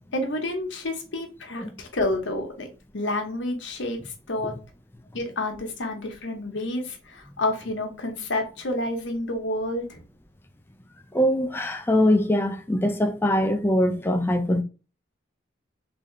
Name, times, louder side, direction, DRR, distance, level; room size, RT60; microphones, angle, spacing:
voice 1, 0.1-2.7 2.9-4.5 5.1-10.0, left 1 dB, 80° left, 1.0 m, -29 dB
voice 2, 11.1-14.6, left 1 dB, 10° left, 0.4 m, -22 dB
3.7 x 2.7 x 3.1 m
head